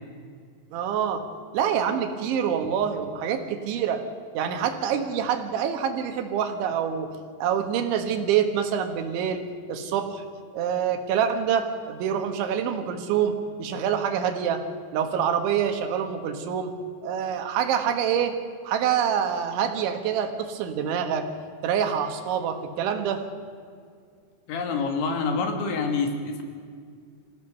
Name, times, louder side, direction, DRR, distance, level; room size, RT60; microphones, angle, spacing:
voice 1, 0.7-1.2 1.5-4.0 4.4-7.1 7.4-10.2 10.5-13.3 13.6-14.6 14.9-16.7 17.0-18.3 18.7-21.3 21.6-23.2, right 8 dB, 80° right, 6 dB, 3.9 m, -26 dB
voice 2, 24.5-26.4, left 4 dB, 80° left, 4 dB, 4.5 m, -27 dB
26.5 x 16.5 x 6.9 m, 2.1 s
omnidirectional pair, 5.3 m